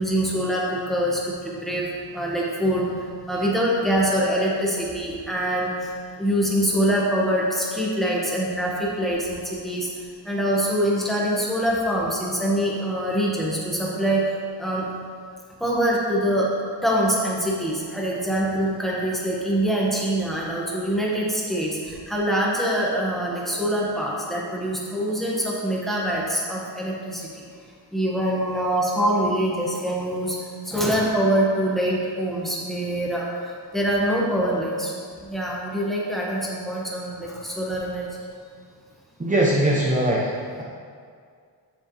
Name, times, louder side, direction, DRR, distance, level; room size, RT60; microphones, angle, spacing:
voice 1, 0.0-5.9 6.2-9.9 10.2-14.2 14.6-14.9 15.6-16.5 16.8-27.3 27.9-30.4 30.6-34.9 35.2-38.1, right 1 dB, ahead, -5 dB, 1.7 m, -24 dB
voice 2, 39.2-40.6, right 1 dB, 20° right, -3 dB, 0.8 m, -21 dB
8.1 x 7.2 x 3.3 m, 2.2 s
wide cardioid pair, 95°, 43 cm